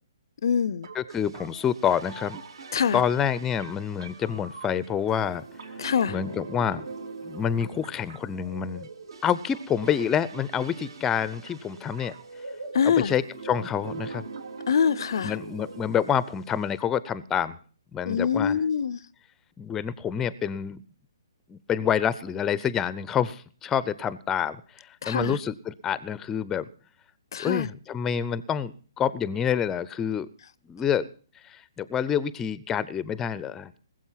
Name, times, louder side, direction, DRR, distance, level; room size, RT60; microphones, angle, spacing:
voice 1, 0.4-0.9 2.7-3.0 5.8-6.2 12.7-13.1 14.7-15.4 18.0-19.0 25.0-25.4 27.3-27.7, left 7 dB, 60° left, 0.6 m, -24 dB
sound 1, 0.8-16.8, right 4 dB, 70° right, 3.4 m, -42 dB
voice 2, 0.9-2.4 2.9-5.4 6.1-6.9 7.2-8.9 9.2-12.1 12.8-13.2 13.5-14.2 15.2-17.6 17.9-18.6 19.6-20.8 21.5-24.6 25.1-26.7 27.4-30.3 30.7-31.1 31.5-33.8, left 8 dB, 15° left, 0.6 m, -27 dB
20.0 x 7.7 x 5.8 m
hypercardioid pair, 145°, 3 cm